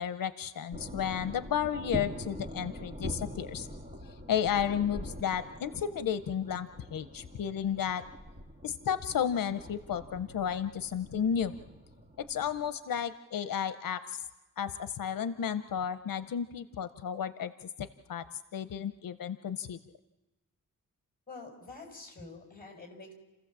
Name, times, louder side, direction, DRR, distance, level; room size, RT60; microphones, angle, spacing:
voice 1, 0.0-3.7 4.0-8.0 8.6-11.6 12.2-14.3 14.6-18.2 18.5-19.8, left 8 dB, 85° left, 11 dB, 0.7 m, -33 dB
sound 1, 0.7-12.7, equal, 20° right, 1.8 m, -44 dB
voice 2, 21.3-23.1, left 3 dB, 25° left, 1 dB, 5.2 m, -47 dB
30.0 x 15.5 x 7.4 m, 1.1 s
wide cardioid pair, 165°, 33 cm